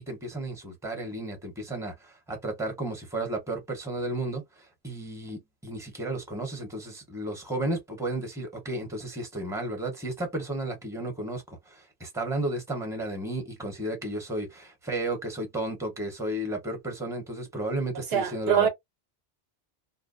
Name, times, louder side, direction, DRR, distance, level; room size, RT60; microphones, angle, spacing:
voice 1, 0.1-18.7, right 2 dB, 5° right, 0.8 m, -33 dB
voice 2, 17.9-18.7, right 8 dB, 70° right, 0.8 m, -24 dB
2.6 x 2.1 x 2.4 m
omnidirectional pair, 1.1 m